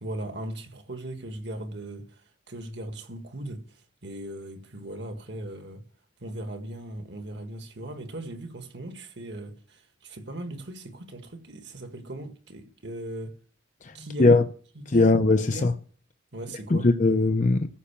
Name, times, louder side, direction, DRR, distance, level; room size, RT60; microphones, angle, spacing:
voice 1, 0.0-5.8 6.2-13.4 13.9-14.4 14.8-15.2 15.5-15.7 16.3-16.9, right 1 dB, 60° right, 1.8 m, -38 dB
voice 2, 14.9-15.7 16.7-17.8, left 2 dB, 40° left, 0.6 m, -20 dB
14.5 x 5.6 x 7.1 m
head